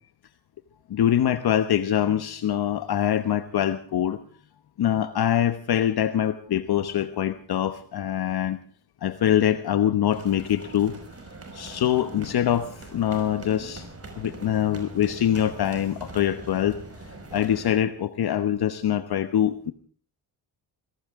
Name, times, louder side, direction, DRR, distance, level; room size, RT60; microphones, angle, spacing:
voice 1, 0.9-4.2 4.8-8.6 9.0-10.9 11.5-13.8 14.2-16.7 17.3-19.7, left 10 dB, 60° left, 11 dB, 1.1 m, -24 dB
sound 1, 10.1-17.8, right 2 dB, 35° right, 5.8 m, -42 dB
22.5 x 17.5 x 3.7 m, 0.44 s
cardioid pair, 80°, 42 cm